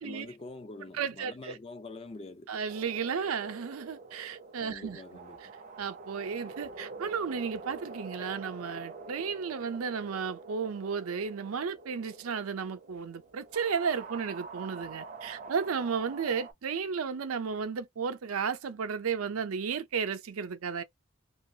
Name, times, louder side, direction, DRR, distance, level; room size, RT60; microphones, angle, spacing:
voice 1, 0.0-2.5 4.6-5.5, left 2 dB, 25° left, 0.3 m, -45 dB
voice 2, 0.9-1.6 2.5-5.0 5.8-20.8, right 6 dB, 85° right, 0.5 m, -33 dB
sound 1, 2.7-16.5, right 4 dB, 40° right, 0.5 m, -46 dB
2.5 x 2.3 x 2.7 m
head